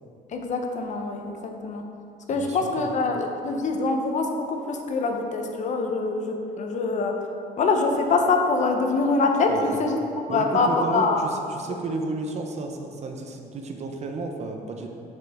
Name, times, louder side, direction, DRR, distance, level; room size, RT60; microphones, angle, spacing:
voice 1, 0.3-1.8 2.3-7.2 7.6-10.0 10.3-11.2, left 3 dB, 45° left, 3 dB, 0.8 m, -24 dB
voice 2, 2.3-2.9 9.5-9.8 10.3-14.9, right 3 dB, 40° right, 4 dB, 0.7 m, -32 dB
6.7 x 6.1 x 3.6 m, 2.5 s
cardioid pair, 110°, 17 cm